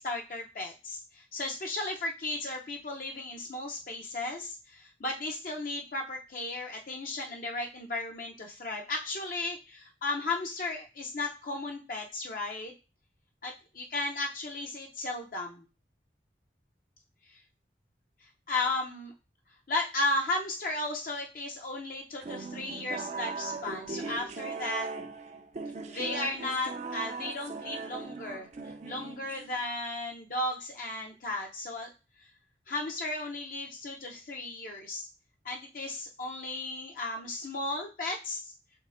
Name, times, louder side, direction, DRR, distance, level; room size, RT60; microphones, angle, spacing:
voice 1, 0.0-12.7 13.4-15.6 18.5-19.1 19.7-24.9 25.9-28.5 28.8-31.9 32.7-35.1 35.4-38.5, left 2 dB, 50° left, 1 dB, 0.6 m, -35 dB
sound 1, 22.2-29.6, right 4 dB, 40° right, 0.4 m, -39 dB
5.4 x 3.4 x 2.5 m, 0.31 s
head